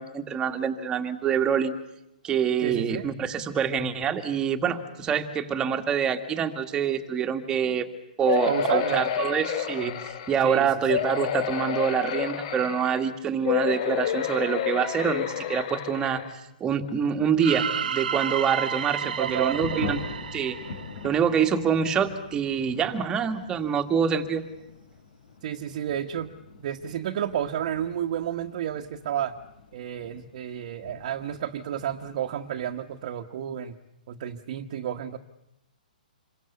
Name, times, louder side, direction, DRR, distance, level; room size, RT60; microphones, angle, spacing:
voice 1, 0.0-1.7 2.2-7.9 8.2-16.2 16.6-20.0 20.3-20.6 21.0-24.4, right 7 dB, 15° right, 6 dB, 2.0 m, -26 dB
voice 2, 2.6-3.1 8.5-9.0 10.4-10.7 19.0-19.9 25.4-26.3 26.6-29.4 29.7-33.8 34.1-35.2, right 10 dB, 50° right, 2 dB, 1.4 m, -31 dB
sound 1, 8.3-10.4 10.9-13.1 13.4-16.3 16.9-17.0 17.3-17.4, left 9 dB, 50° left, 2.7 m, -29 dB
sound 2, 17.4-21.5, right 7 dB, 75° right, 1.2 m, -31 dB
Thunder / Rain, 18.7-33.1, left 5 dB, 70° left, 5.7 m, -43 dB
28.0 x 23.5 x 8.3 m, 0.86 s
hypercardioid pair, 150°, 5 cm